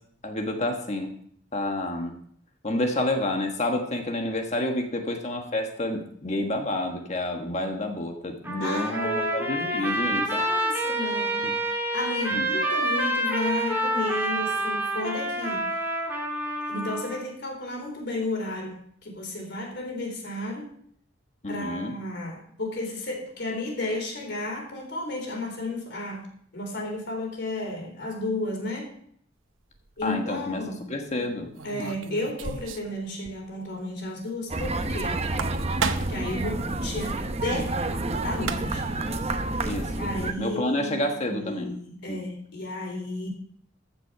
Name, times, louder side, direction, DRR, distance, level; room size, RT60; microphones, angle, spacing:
voice 1, 0.2-1.1 1.5-2.1 2.6-10.4 11.4-11.5 12.3-12.5 21.4-21.9 30.0-30.6 30.9-31.5 31.8-31.9 39.6-39.9 40.4-41.7 42.1-42.2, left 1 dB, 35° left, 3 dB, 1.4 m, -29 dB
Trumpet, 8.4-17.3, right 1 dB, 10° right, 2.3 m, -28 dB
voice 2, 8.6-15.9 16.7-20.7 21.5-26.3 26.5-28.9 30.0-30.9 31.6-35.3 36.1-37.8 38.2-38.8 40.0-43.3, left 2 dB, 60° left, 1 dB, 3.7 m, -33 dB
sound 1, 29.7-30.1 31.5-33.0 33.2-33.3 33.7-33.8 35.2-36.3 38.0-38.1 38.3-38.9, right 4 dB, 90° right, 0.9 m, -32 dB
sound 2, 34.5-40.3, right 2 dB, 35° right, 0.8 m, -29 dB
15.0 x 6.2 x 5.8 m, 0.62 s
head